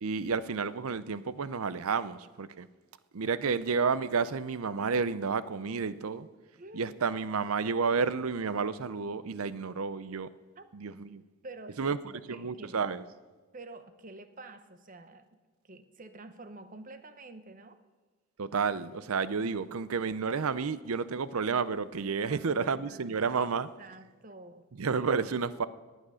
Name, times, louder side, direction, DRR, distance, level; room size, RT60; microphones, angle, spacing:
voice 1, 0.0-2.7 3.1-6.3 6.7-10.3 10.7-11.2 11.8-12.0 12.3-13.0 18.4-23.7 24.8-25.7, right 5 dB, 75° right, 0.6 m, -31 dB
voice 2, 6.6-7.1 10.6-10.7 11.4-12.8 13.5-15.3 15.6-17.8 22.2-23.2 23.8-24.7 25.0-25.1, right 2 dB, 35° right, 0.9 m, -48 dB
18.0 x 9.2 x 6.3 m
head